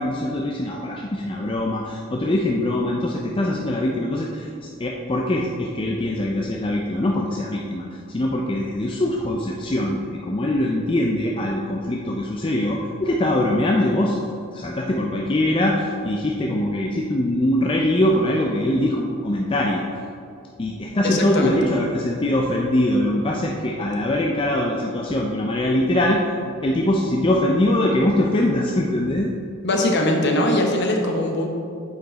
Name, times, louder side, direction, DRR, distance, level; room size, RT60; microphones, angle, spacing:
voice 1, 0.0-14.2 14.5-19.8 20.6-26.2 26.6-29.3, left 1 dB, 25° left, -1 dB, 0.4 m, -22 dB
voice 2, 21.0-21.7 29.6-31.5, left 1 dB, 50° left, 1 dB, 0.9 m, -21 dB
8.3 x 4.8 x 4.0 m, 2.5 s
head